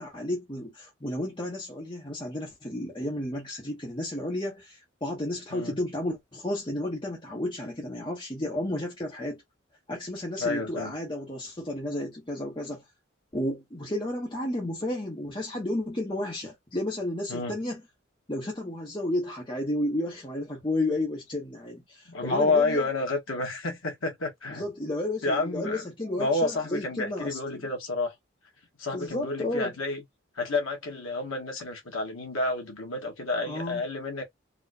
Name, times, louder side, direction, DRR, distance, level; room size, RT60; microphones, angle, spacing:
voice 1, 0.0-9.4 9.9-12.8 13.3-17.8 18.3-22.9 24.5-27.7 28.9-29.7 33.4-33.8, left 1 dB, 25° left, 1.0 m, -32 dB
voice 2, 10.4-10.9 17.3-17.6 22.1-24.7 25.2-25.8 26.2-28.1 28.8-30.0 30.4-34.2, left 3 dB, 90° left, 1.5 m, -29 dB
4.0 x 2.5 x 2.7 m
head